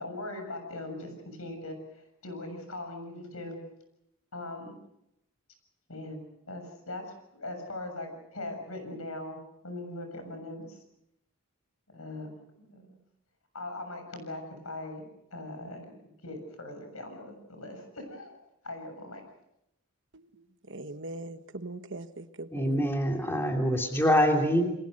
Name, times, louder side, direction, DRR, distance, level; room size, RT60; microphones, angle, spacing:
voice 1, 0.0-1.8 2.2-3.6 4.3-4.7 5.9-6.2 6.5-9.4 9.6-10.8 11.9-13.0 13.5-15.1 15.3-15.9 16.2-18.4 18.6-19.2, left 2 dB, 75° left, 7.0 m, -40 dB
voice 2, 20.7-22.9, right 2 dB, 55° right, 1.3 m, -41 dB
voice 3, 22.5-24.7, equal, 10° left, 2.9 m, -25 dB
29.0 x 22.0 x 6.5 m
head